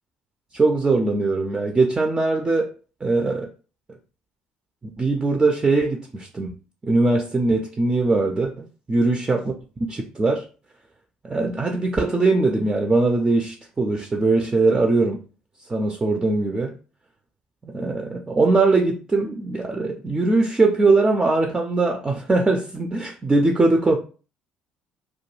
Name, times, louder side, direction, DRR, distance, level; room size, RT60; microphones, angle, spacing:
voice 1, 0.5-2.7 3.0-3.5 5.0-6.5 6.8-9.5 9.9-10.5 11.2-15.2 15.7-16.7 17.6-24.0, right 3 dB, 20° right, 0.4 m, -21 dB
2.2 x 2.2 x 3.0 m
figure-of-eight pair, 55°, 4 cm